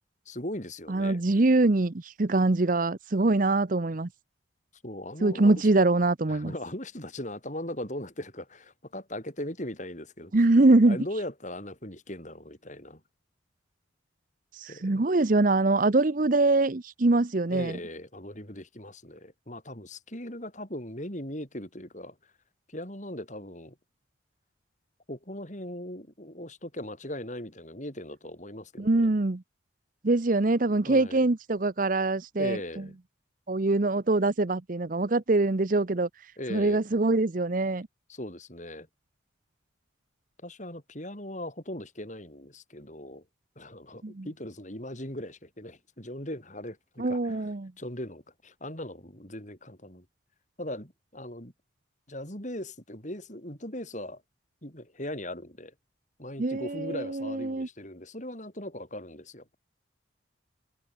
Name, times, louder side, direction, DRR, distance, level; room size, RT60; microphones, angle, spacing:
voice 1, 0.3-1.2 4.8-5.6 6.3-10.3 10.8-13.0 14.7-15.0 17.5-22.2 22.7-23.8 25.1-29.1 30.9-31.3 32.4-33.0 36.4-36.8 38.1-38.9 40.4-43.2 43.6-47.4 47.8-50.1 50.6-51.5 52.1-54.2 54.6-55.7 56.2-59.6, left 1 dB, 40° left, 7.3 m, -39 dB
voice 2, 0.9-4.1 5.2-6.5 10.3-11.0 14.6-17.8 28.8-29.4 30.0-32.6 33.5-36.1 36.5-37.9 44.0-44.2 47.0-47.7 56.4-57.7, right 2 dB, 45° right, 0.7 m, -24 dB
head